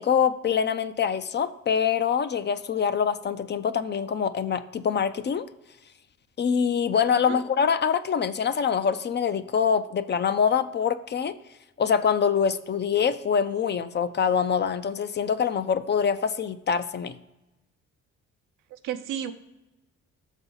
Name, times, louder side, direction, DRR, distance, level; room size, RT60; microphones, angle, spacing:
voice 1, 0.0-5.5 6.4-11.4 11.8-17.1, left 7 dB, 35° left, 12 dB, 0.4 m, -25 dB
voice 2, 18.7-19.3, right 9 dB, 80° right, 8 dB, 0.7 m, -32 dB
6.9 x 4.1 x 5.5 m, 1.0 s
cardioid pair, 90°, 30 cm